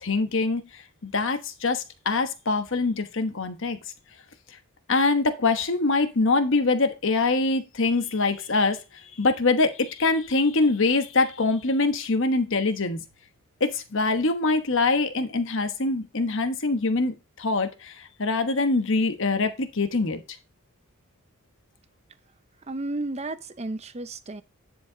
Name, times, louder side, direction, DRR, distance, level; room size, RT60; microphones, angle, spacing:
voice 1, 0.0-3.8 4.9-13.0 13.6-20.2, left 3 dB, 55° left, 1.1 m, -24 dB
voice 2, 22.7-24.4, right 2 dB, 30° right, 0.6 m, -32 dB
10.5 x 4.7 x 3.9 m
head